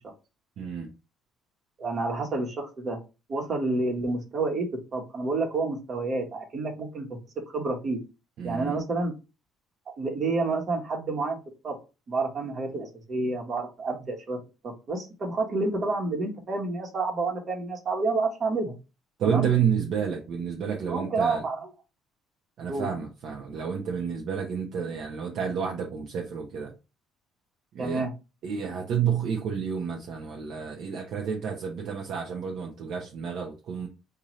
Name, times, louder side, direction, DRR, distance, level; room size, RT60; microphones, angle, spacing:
voice 1, 0.6-0.9 8.4-8.8 19.2-21.4 22.6-26.7 27.7-28.0 28.4-33.9, right 7 dB, 65° right, 1 dB, 0.7 m, -30 dB
voice 2, 1.8-3.0 3.3-7.2 7.5-8.0 8.4-9.1 10.0-11.4 11.6-11.8 12.1-14.4 14.6-18.8 19.2-19.5 20.9-21.7 22.7-22.9 27.8-28.1, right 3 dB, 45° right, 2 dB, 1.3 m, -29 dB
4.0 x 2.6 x 3.1 m, 0.29 s
supercardioid pair, 85°, 0 cm